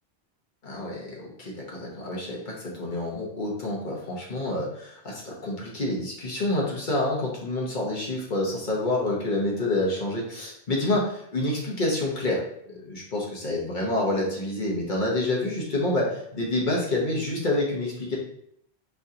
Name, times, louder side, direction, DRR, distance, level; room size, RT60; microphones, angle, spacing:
voice 1, 0.6-12.4 12.7-18.2, left 2 dB, 50° left, -3 dB, 1.1 m, -28 dB
3.6 x 3.4 x 2.8 m, 0.71 s
omnidirectional pair, 1.1 m